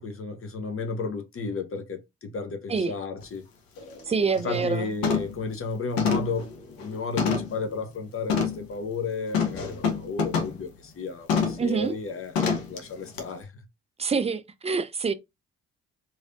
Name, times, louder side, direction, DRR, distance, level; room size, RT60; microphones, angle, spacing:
voice 1, 0.0-3.5 4.4-6.5 6.8-12.3 12.7-13.5, left 3 dB, 35° left, 0.7 m, -33 dB
sound 1, 3.2-3.3 3.8-4.0 4.4-4.7 5.0-5.4 6.0-7.6 8.3-8.6 9.3-10.6 11.3-11.7 12.3-12.8 13.2-13.3, left 6 dB, 60° left, 0.9 m, -27 dB
voice 2, 4.1-4.9 11.6-11.9 14.0-15.1, right 5 dB, 15° right, 0.4 m, -26 dB
3.2 x 2.7 x 2.5 m
hypercardioid pair, 45°, 38 cm